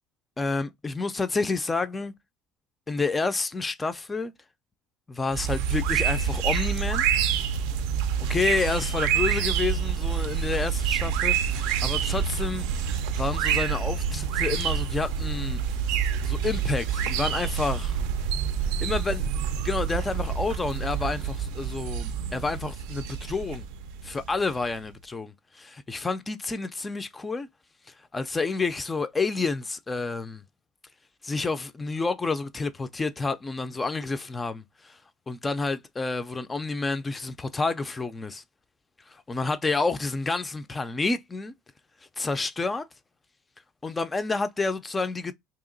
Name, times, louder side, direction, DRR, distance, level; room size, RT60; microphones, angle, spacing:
voice 1, 0.4-2.1 2.9-4.3 5.1-7.0 8.3-15.6 16.2-18.0 18.8-19.2 19.6-23.6 24.0-27.5 28.1-30.4 31.2-35.0 35.3-38.4 39.1-41.5 42.2-42.8 43.8-45.3, left 3 dB, 15° left, 0.3 m, -29 dB
sound 1, 5.3-24.7, right 7 dB, 80° right, 0.5 m, -27 dB
2.8 x 2.8 x 3.7 m
cardioid pair, 160°, 0 cm